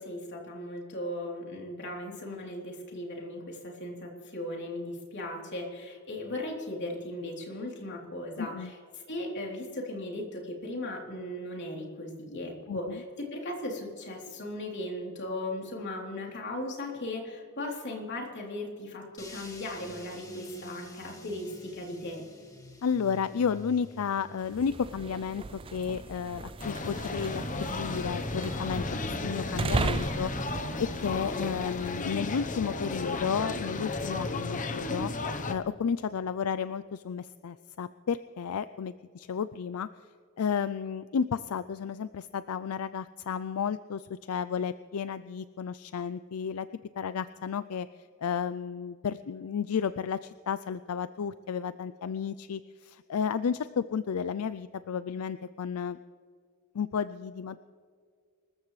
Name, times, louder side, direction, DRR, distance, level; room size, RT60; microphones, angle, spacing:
voice 1, 0.0-8.8 9.1-22.2, left 1 dB, 55° left, -1 dB, 3.4 m, -37 dB
voice 2, 8.4-8.7 12.7-13.0 22.8-35.1 35.4-39.9 40.4-46.7 47.0-47.9 48.2-56.0 56.7-57.6, left 6 dB, 80° left, 14 dB, 0.4 m, -32 dB
sound 1, 19.2-29.4, left 1 dB, 15° left, 1.8 m, -51 dB
sound 2, 24.4-32.3, right 3 dB, 25° right, 0.4 m, -37 dB
sound 3, 26.6-35.5, left 2 dB, 35° left, 0.9 m, -34 dB
25.5 x 14.0 x 3.2 m, 2.1 s
head